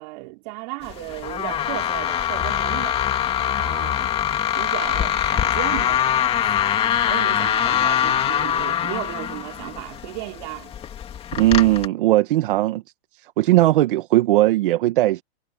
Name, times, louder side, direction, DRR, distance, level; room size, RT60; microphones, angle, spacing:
voice 1, 0.0-3.0 3.5-4.1 4.5-6.3 6.8-10.8, right 25 dB, 40° right, 4.2 m, -34 dB
sound 1, 0.8-11.9, left 10 dB, 20° left, 2.5 m, -23 dB
voice 2, 11.3-12.8 13.2-15.2, right 16 dB, 55° right, 1.5 m, -18 dB
supercardioid pair, 160°, 31 cm